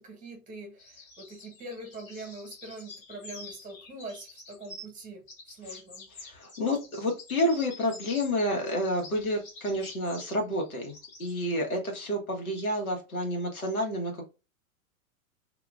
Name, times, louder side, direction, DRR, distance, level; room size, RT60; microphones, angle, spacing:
voice 1, 0.0-6.1, right 2 dB, 20° right, 3 dB, 1.1 m, -43 dB
sound 1, 0.8-5.0 5.3-11.4, left 3 dB, 40° left, 1.3 m, -48 dB
voice 2, 6.2-14.2, left 1 dB, 85° left, 1 dB, 1.4 m, -29 dB
2.8 x 2.3 x 3.4 m, 0.29 s
figure-of-eight pair, 105°, 42 cm